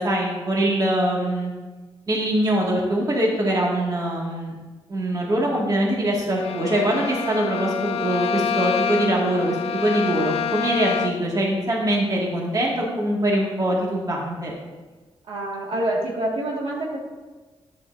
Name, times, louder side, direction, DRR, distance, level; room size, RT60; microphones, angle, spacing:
voice 1, 0.0-1.5 2.1-4.5 4.9-14.5, right 1 dB, 40° right, -3 dB, 2.1 m, -23 dB
Bowed string instrument, 6.4-11.4, left 7 dB, 85° left, 0.4 m, -27 dB
voice 2, 15.3-17.0, right 1 dB, 70° right, -4 dB, 2.0 m, -26 dB
10.5 x 8.6 x 2.7 m, 1.3 s
cardioid pair, 95°, 10 cm